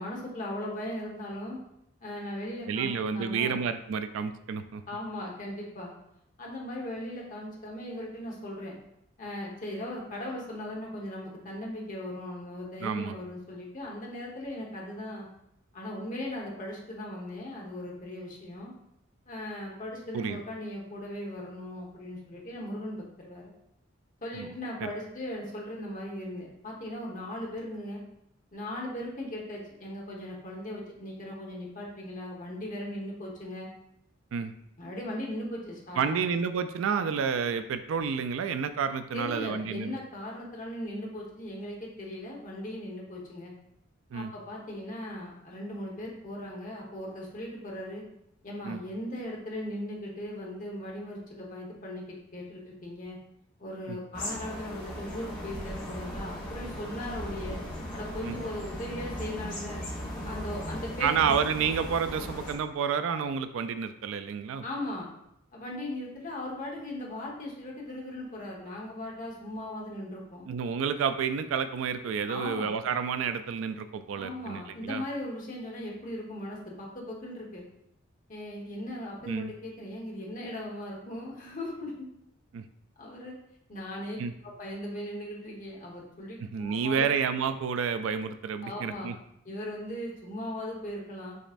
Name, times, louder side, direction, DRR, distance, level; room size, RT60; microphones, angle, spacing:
voice 1, 0.0-1.6 2.0-3.6 4.9-5.9 6.4-8.8 9.2-15.3 15.7-18.7 19.3-23.5 24.2-28.0 28.5-33.7 34.8-36.3 39.1-43.5 44.1-48.0 48.4-52.0 52.3-53.2 53.6-57.6 57.9-59.8 60.2-61.1 64.6-65.1 65.5-70.5 72.3-72.7 74.1-77.6 78.3-81.9 83.0-83.3 83.7-84.2 84.6-87.1 88.6-89.1 89.4-91.4, left 1 dB, 40° left, -2 dB, 1.2 m, -38 dB
voice 2, 2.7-4.8 12.8-13.2 20.1-20.4 24.3-24.5 24.8-24.9 34.3-34.5 35.9-39.9 44.1-44.3 48.6-48.8 53.9-54.0 58.2-58.4 61.0-64.6 70.5-75.0 79.3-79.5 82.5-82.7 84.2-84.3 86.5-89.2, right 6 dB, 80° right, 11 dB, 0.3 m, -30 dB
sound 1, 54.1-62.5, equal, 25° left, 1.5 m, -38 dB
6.4 x 3.1 x 2.5 m, 0.78 s
head